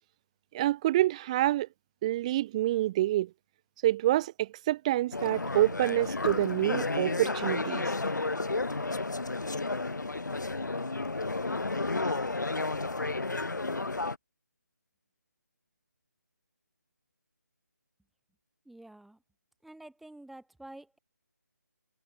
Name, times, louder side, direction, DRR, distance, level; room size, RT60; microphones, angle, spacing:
voice 1, 0.5-1.7 2.0-3.3 3.8-7.8, right 15 dB, 20° right, 1.3 m, -27 dB
sound 1, 5.1-14.2, left 3 dB, 80° left, 4.1 m, -32 dB
voice 2, 18.7-19.2 19.6-21.0, right 1 dB, ahead, 7.4 m, -49 dB
figure-of-eight pair, 160°, 10 cm